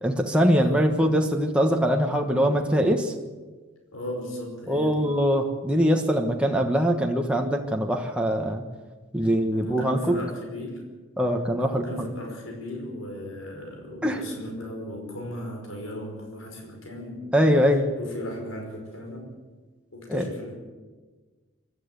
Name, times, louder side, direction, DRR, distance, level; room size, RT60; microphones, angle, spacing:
voice 1, 0.0-3.1 4.7-8.6 9.1-10.2 11.2-12.1 14.0-14.2 17.3-17.9 20.1-20.2, equal, 5° right, 1 dB, 1.3 m, -22 dB
voice 2, 3.9-5.1 9.2-10.9 11.6-17.3 18.0-19.3 19.9-20.5, left 1 dB, 85° left, 1 dB, 5.3 m, -37 dB
25.0 x 13.0 x 8.4 m, 1.3 s
head